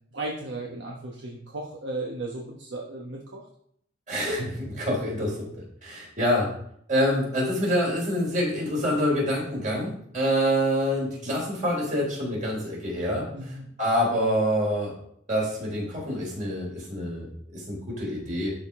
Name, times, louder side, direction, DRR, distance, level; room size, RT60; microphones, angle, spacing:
voice 1, 0.1-3.5 13.3-13.7, right 2 dB, 65° right, -2 dB, 1.1 m, -35 dB
voice 2, 4.1-5.5 5.8-6.5 6.9-13.3 13.8-14.9 15.3-18.5, equal, 40° right, -3 dB, 3.8 m, -26 dB
12.0 x 4.9 x 3.7 m, 0.68 s
head